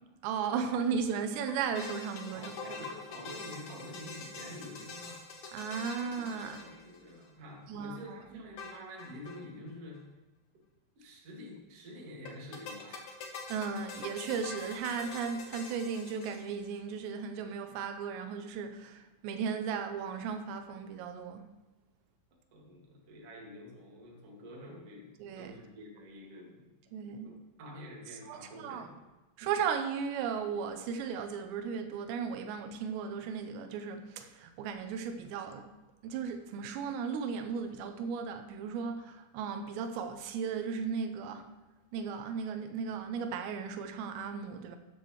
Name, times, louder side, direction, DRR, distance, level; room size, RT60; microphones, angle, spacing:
voice 1, 0.2-2.5 5.5-6.6 7.7-8.0 13.5-21.5 25.2-25.5 26.9-27.4 28.3-28.4 28.6-28.9 29.4-35.7 36.0-41.5 41.9-44.8, right 6 dB, 90° right, 3.0 m, -36 dB
sound 1, 1.5-7.3 8.6-9.4 9.7-9.8 9.9-10.0 12.3-16.8, left 4 dB, 65° left, 2.1 m, -45 dB
voice 2, 2.3-5.3 6.0-10.1 11.0-13.2 22.5-26.7 27.0-29.0, left 1 dB, 45° right, 2.5 m, -48 dB
13.0 x 9.4 x 3.1 m
omnidirectional pair, 4.9 m